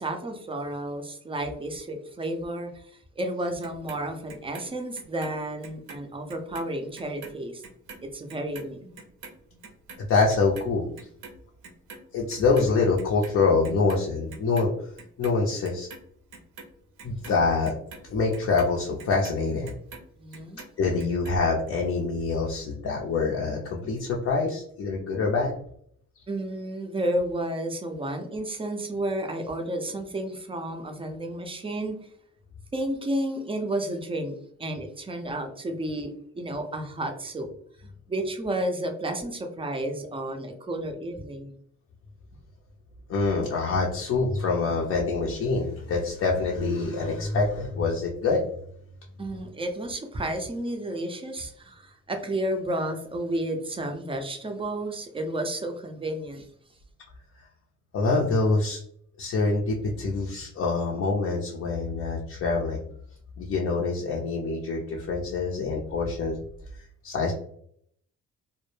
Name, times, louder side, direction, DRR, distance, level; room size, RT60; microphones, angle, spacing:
voice 1, 0.0-7.6 8.0-9.0 9.5-9.6 20.2-20.6 26.3-32.0 32.7-37.5 37.8-41.6 49.2-56.5, right 1 dB, 20° right, 4 dB, 0.4 m, -32 dB
Clock, 3.6-6.0 6.3-12.7 13.0-14.0 14.3-15.3 15.6-20.1 20.3-21.3 21.7-21.8, right 4 dB, 80° right, 0.6 m, -45 dB
voice 2, 10.1-10.9 12.1-14.7 15.2-15.9 17.0-17.7 18.1-19.7 20.8-25.6 43.1-48.4 57.9-58.8 59.2-62.8 63.4-66.4 67.0-67.3, left 4 dB, 50° left, -2 dB, 0.5 m, -25 dB
2.1 x 2.0 x 3.0 m, 0.65 s
cardioid pair, 90°, 30 cm